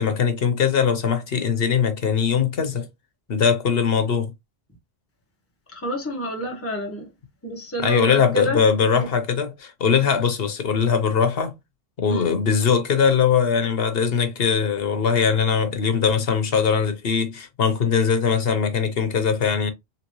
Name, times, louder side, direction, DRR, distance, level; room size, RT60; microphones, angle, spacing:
voice 1, 0.0-2.9 3.3-4.3 7.8-11.5 12.0-19.7, left 6 dB, 70° left, 1.1 m, -21 dB
voice 2, 5.7-7.1 7.4-9.1 12.1-12.3, right 1 dB, 15° left, 1.2 m, -30 dB
4.1 x 2.9 x 3.1 m
omnidirectional pair, 1.1 m